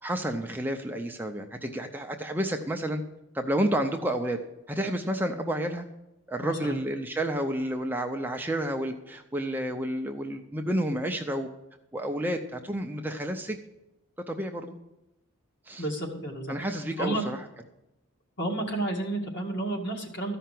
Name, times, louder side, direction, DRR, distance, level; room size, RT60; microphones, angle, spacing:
voice 1, 0.0-3.0 3.3-4.4 4.7-5.8 6.3-11.5 11.9-13.6 14.3-14.7 15.7-15.8 16.5-17.4, right 1 dB, 10° right, 3 dB, 0.6 m, -30 dB
voice 2, 6.4-6.8 15.8-16.6 17.0-17.2 18.4-20.4, right 2 dB, 50° left, 0 dB, 2.1 m, -31 dB
14.0 x 5.7 x 7.6 m, 0.91 s
head